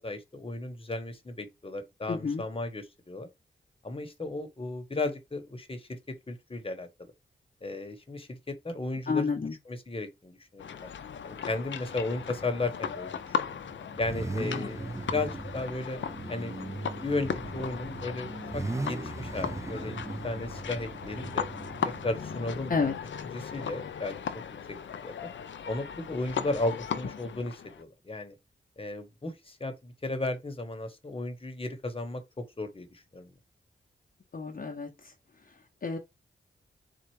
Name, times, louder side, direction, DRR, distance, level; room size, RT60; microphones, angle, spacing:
voice 1, 0.0-3.3 3.8-7.1 7.6-9.3 9.7-10.9 11.2-13.2 14.0-16.0 16.3-16.7 17.0-21.4 22.0-22.8 23.3-24.4 24.7-24.8 25.0-25.3 25.7-28.3 28.8-33.3, left 2 dB, 30° left, 1.1 m, -35 dB
voice 2, 2.1-2.4 9.1-9.6 14.5-14.7 22.7-22.9 34.3-35.1 35.8-36.0, left 5 dB, 45° left, 0.8 m, -30 dB
sound 1, 10.6-27.8, left 7 dB, 70° left, 0.5 m, -37 dB
Car / Idling / Accelerating revving vroom, 11.9-24.0, right 3 dB, 15° right, 0.4 m, -39 dB
4.3 x 2.4 x 4.7 m
cardioid pair, 60°, 20 cm